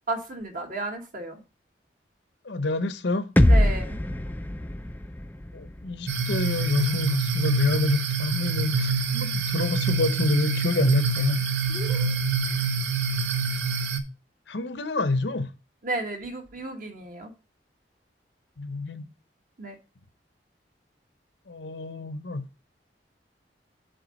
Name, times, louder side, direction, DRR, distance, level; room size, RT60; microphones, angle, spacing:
voice 1, 0.1-1.4 3.4-4.0 11.7-12.1 12.5-12.6 15.8-17.3 19.6-19.8, right 2 dB, 50° right, 1.5 m, -33 dB
voice 2, 2.4-3.3 5.5-11.5 14.5-15.5 18.6-19.1 21.5-22.4, left 2 dB, 80° left, 0.8 m, -27 dB
sound 1, 3.4-7.3, left 1 dB, 10° left, 0.4 m, -24 dB
sound 2, 6.1-14.0, right 4 dB, 80° right, 1.0 m, -26 dB
7.9 x 3.8 x 6.3 m
head